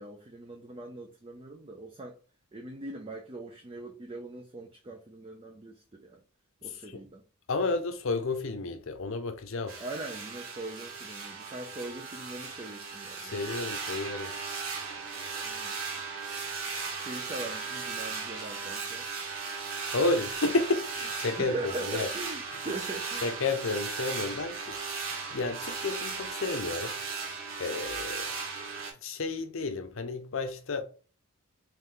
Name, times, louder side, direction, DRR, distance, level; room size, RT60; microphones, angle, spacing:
voice 1, 0.0-2.2 2.5-6.2 6.6-7.2 9.8-13.4 15.4-15.7 16.9-19.1 21.3-23.4, right 2 dB, 25° right, 0.4 m, -41 dB
voice 2, 7.5-9.8 13.2-14.3 19.9-21.5 21.9-22.1 23.2-24.7 25.3-27.0 27.6-28.3 29.0-30.8, left 3 dB, 60° left, 0.6 m, -31 dB
sound 1, 9.7-28.9, right 5 dB, 60° right, 1.3 m, -37 dB
3.3 x 3.2 x 3.7 m
head